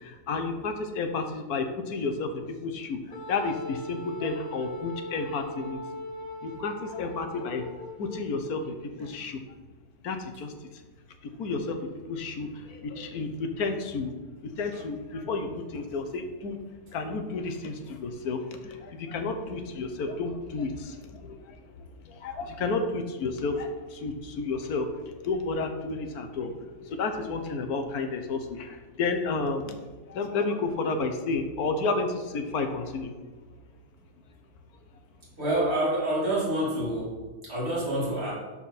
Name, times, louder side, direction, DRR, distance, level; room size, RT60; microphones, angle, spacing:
voice 1, 0.0-5.8 6.4-7.6 8.0-9.4 10.0-10.5 11.2-14.1 14.4-16.6 16.9-21.6 22.0-24.9 25.2-29.8 30.1-33.1, left 3 dB, 70° left, 6 dB, 1.4 m, -31 dB
Wind instrument woodwind instrument, 3.1-8.3, left 1 dB, 5° left, 2.8 m, -39 dB
voice 2, 35.4-37.1 37.4-38.3, right 1 dB, 40° right, -7 dB, 3.0 m, -27 dB
13.0 x 4.5 x 4.2 m, 1.3 s
omnidirectional pair, 1.7 m